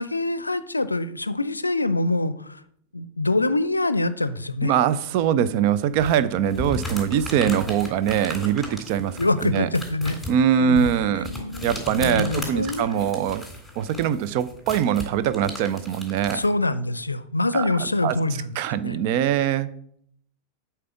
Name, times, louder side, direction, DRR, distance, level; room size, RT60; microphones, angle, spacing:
voice 1, 0.0-2.6 2.9-4.7 6.6-6.7 9.2-10.2 10.6-10.9 11.2-13.1 16.3-19.0, left 2 dB, 80° left, 0.5 m, -25 dB
voice 2, 4.6-9.7 10.3-11.3 11.6-13.4 13.8-16.4 17.5-18.2 18.6-19.7, right 9 dB, 45° right, 0.6 m, -23 dB
sound 1, 6.0-16.5, left 1 dB, ahead, 3.4 m, -36 dB
8.3 x 4.6 x 7.1 m
figure-of-eight pair, 90°, 0 cm